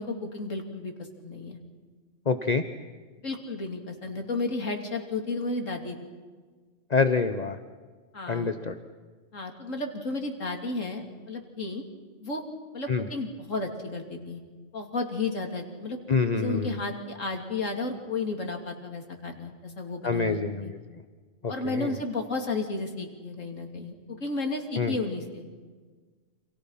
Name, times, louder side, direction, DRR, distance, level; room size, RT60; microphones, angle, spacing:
voice 1, 0.0-1.6 3.2-6.0 8.1-8.5 9.3-11.8 12.2-12.4 12.7-14.4 14.7-16.0 16.3-20.7 21.5-25.4, left 3 dB, 90° left, 3 dB, 3.4 m, -33 dB
voice 2, 2.3-2.6 6.9-7.6 8.3-8.8 12.9-13.1 16.1-16.8 20.0-20.8 21.6-21.9 24.8-24.9, left 4 dB, 35° left, 9 dB, 1.0 m, -26 dB
29.5 x 27.5 x 5.8 m, 1.4 s
omnidirectional pair, 1.3 m